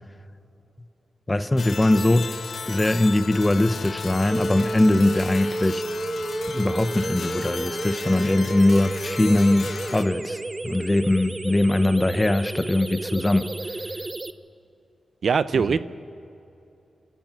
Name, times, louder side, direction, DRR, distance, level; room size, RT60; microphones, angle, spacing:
voice 1, 1.3-2.3 2.7-5.8 6.5-13.5 15.5-15.8, left 1 dB, 15° left, 11 dB, 0.8 m, -21 dB
sound 1, 1.6-10.0, left 5 dB, 55° left, 0.9 m, -35 dB
sound 2, 4.3-14.3, right 2 dB, 25° right, 0.7 m, -32 dB
voice 2, 15.2-15.8, right 6 dB, 60° right, 15 dB, 0.6 m, -21 dB
29.5 x 14.0 x 7.7 m, 2.8 s
wide cardioid pair, 120°, 0 cm